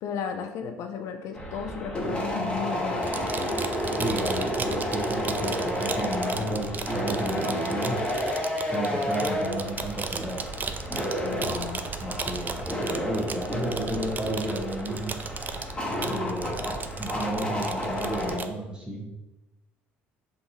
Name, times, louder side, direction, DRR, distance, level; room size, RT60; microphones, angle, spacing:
voice 1, 0.0-3.6 11.2-11.8, left 7 dB, 60° left, 5 dB, 0.5 m, -34 dB
sound 1, 1.3-18.4, equal, 15° left, 1.3 m, -30 dB
sound 2, 3.0-18.5, right 5 dB, 30° right, 0.4 m, -36 dB
voice 2, 4.0-8.4 8.7-10.4 12.0-15.2 16.0-19.1, right 1 dB, 15° right, -1 dB, 1.3 m, -33 dB
5.7 x 2.6 x 2.9 m, 0.95 s
hypercardioid pair, 65°, 6 cm